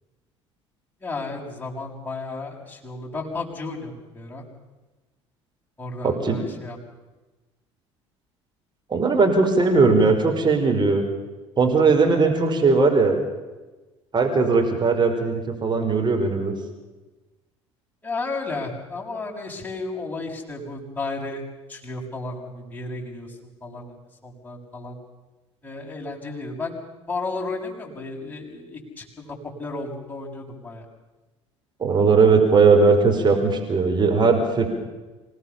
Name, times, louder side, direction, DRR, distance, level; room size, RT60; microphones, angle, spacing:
voice 1, 1.0-4.4 5.8-6.8 18.0-21.4 21.7-23.3 23.6-24.0 24.2-24.9 25.6-26.8 27.1-30.8, left 3 dB, 10° left, -3 dB, 7.1 m, -33 dB
voice 2, 6.0-6.4 8.9-11.0 11.6-13.2 14.1-16.5 31.8-34.7, right 4 dB, 30° right, 4 dB, 4.9 m, -18 dB
26.5 x 18.5 x 7.1 m, 1.2 s
figure-of-eight pair, 60°, 15 cm